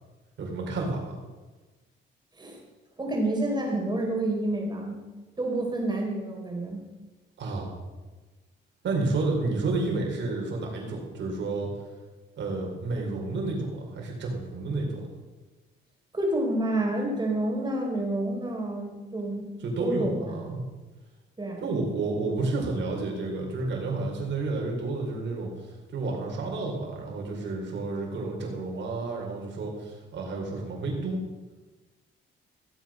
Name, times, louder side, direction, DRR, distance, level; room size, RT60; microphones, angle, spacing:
voice 1, 0.4-1.1 7.4-7.7 8.8-11.7 12.4-15.0 19.6-20.6 21.6-31.2, right 3 dB, 65° right, -1 dB, 4.7 m, -30 dB
voice 2, 3.0-5.0 5.4-6.8 16.1-19.5 19.8-20.4 21.4-21.6, right 1 dB, 20° right, 0 dB, 4.6 m, -29 dB
17.0 x 8.0 x 6.5 m, 1.2 s
cardioid pair, 90°, 20 cm